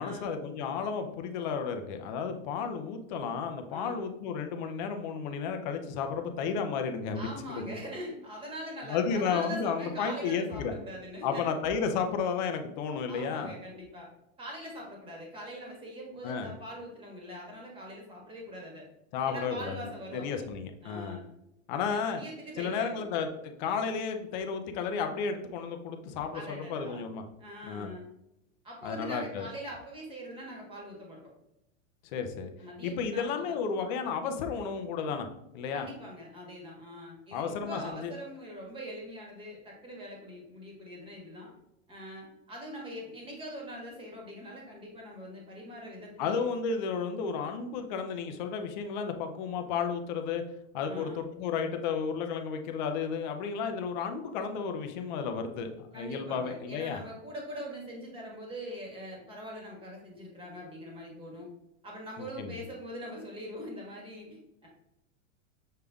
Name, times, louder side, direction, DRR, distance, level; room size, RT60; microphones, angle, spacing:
voice 1, 0.0-7.8 8.8-10.7 11.2-13.5 16.2-16.5 19.1-19.9 20.1-21.2 21.7-22.2 22.6-27.2 27.6-27.9 28.8-29.5 32.1-32.5 32.8-35.3 35.5-35.9 37.3-38.1 46.2-50.4 50.7-57.0 62.2-62.5, left 6 dB, 35° left, 6 dB, 0.5 m, -33 dB
voice 2, 3.7-4.0 7.1-11.5 13.1-14.1 14.4-18.8 19.3-20.4 20.8-21.3 21.8-23.0 26.3-27.0 27.4-28.0 28.6-31.2 32.6-33.6 35.7-41.5 41.9-46.5 50.9-51.2 55.9-61.5 61.8-64.7, equal, 15° right, -1 dB, 1.3 m, -43 dB
6.6 x 3.5 x 2.3 m, 0.86 s
supercardioid pair, 155°, 41 cm